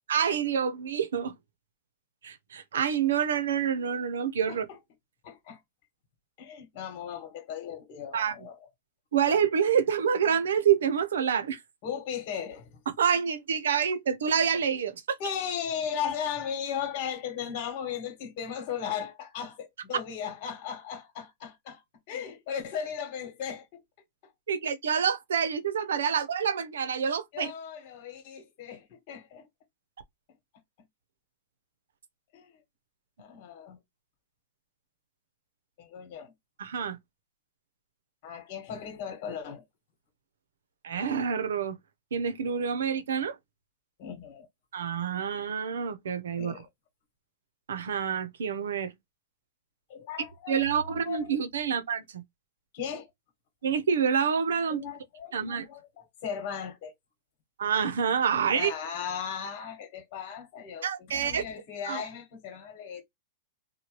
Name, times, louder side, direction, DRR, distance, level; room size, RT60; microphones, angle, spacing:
voice 1, 0.1-1.4 2.2-4.7 8.1-8.4 9.1-11.6 13.0-15.2 24.5-27.5 36.6-37.0 40.8-41.8 42.1-43.4 44.7-46.5 47.7-48.9 50.5-52.2 53.6-54.8 55.3-55.7 57.6-58.7 60.8-61.4 61.9-62.0, right 7 dB, 85° right, 0.6 m, -27 dB
voice 2, 5.2-5.6 6.4-8.6 11.8-12.8 15.2-23.8 24.2-24.3 27.3-29.5 32.3-32.6 33.2-33.8 35.8-36.3 38.2-39.6 44.0-44.5 46.4-46.7 49.9-51.3 52.7-53.1 54.7-56.9 58.5-63.0, left 8 dB, 50° left, 1.3 m, -37 dB
2.9 x 2.2 x 3.0 m
hypercardioid pair, 135°, 0 cm